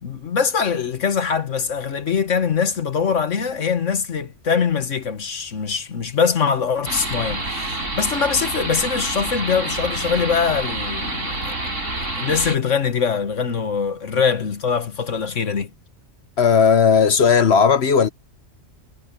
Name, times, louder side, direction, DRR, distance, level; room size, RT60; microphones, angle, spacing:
voice 1, 0.0-11.5 12.1-15.7, left 6 dB, 75° left, 1.8 m, -23 dB
sound 1, 6.8-12.6, right 2 dB, 90° right, 6.0 m, -27 dB
voice 2, 16.4-18.1, left 6 dB, 60° left, 1.1 m, -15 dB
omnidirectional pair, 1.3 m